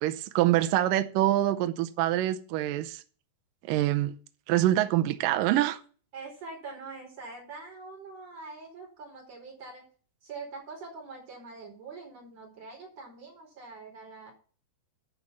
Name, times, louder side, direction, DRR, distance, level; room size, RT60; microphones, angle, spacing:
voice 1, 0.0-3.0 3.6-4.2 4.5-5.8, right 14 dB, 85° right, 1.9 m, -25 dB
voice 2, 6.1-9.9 10.2-14.3, right 3 dB, 40° right, 5.5 m, -44 dB
11.0 x 5.2 x 7.1 m
omnidirectional pair, 4.8 m